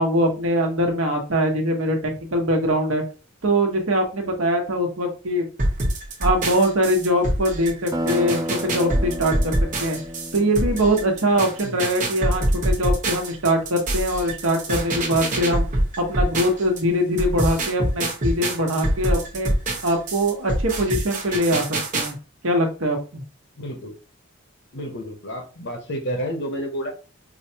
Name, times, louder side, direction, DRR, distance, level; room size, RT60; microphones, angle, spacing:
voice 1, 0.0-3.0 3.4-5.5 6.2-9.5 9.8-10.0 10.3-15.6 16.0-19.5 19.8-22.2 22.4-23.2, equal, 80° right, 2 dB, 1.1 m, -22 dB
sound 1, 5.6-16.8 17.2-22.1, right 1 dB, 40° right, 1.1 m, -25 dB
sound 2, 7.9-12.2, equal, 20° right, 0.5 m, -32 dB
voice 2, 23.6-24.0 24.7-26.9, equal, 60° left, 4 dB, 0.9 m, -30 dB
4.9 x 2.2 x 2.8 m, 0.34 s
head